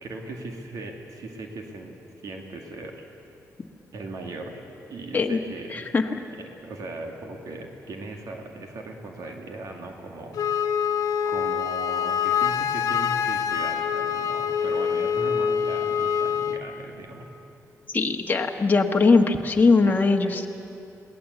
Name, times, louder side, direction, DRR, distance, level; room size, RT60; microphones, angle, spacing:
voice 1, 0.0-1.9 2.2-3.1 3.9-4.6 4.9-5.8 6.4-10.4 11.3-17.3, right 2 dB, 75° right, 2 dB, 2.3 m, -38 dB
voice 2, 5.7-6.1 17.9-20.5, left 4 dB, 30° left, 2 dB, 1.4 m, -20 dB
Wind instrument woodwind instrument, 10.3-16.6, left 8 dB, 80° left, 1.1 m, -25 dB
22.0 x 17.5 x 8.2 m, 2.8 s
cardioid pair, 95°, 6 cm